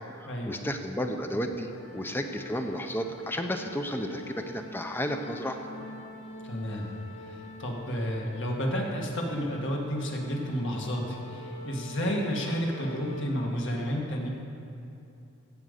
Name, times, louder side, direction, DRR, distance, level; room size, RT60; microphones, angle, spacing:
voice 1, 0.1-5.6, equal, 10° left, 6 dB, 0.6 m, -32 dB
sound 1, 1.7-13.2, left 1 dB, 90° left, 2.3 m, -45 dB
voice 2, 6.4-6.9 7.2-14.3, equal, 60° left, 0 dB, 1.8 m, -31 dB
15.0 x 5.2 x 8.1 m, 2.7 s
head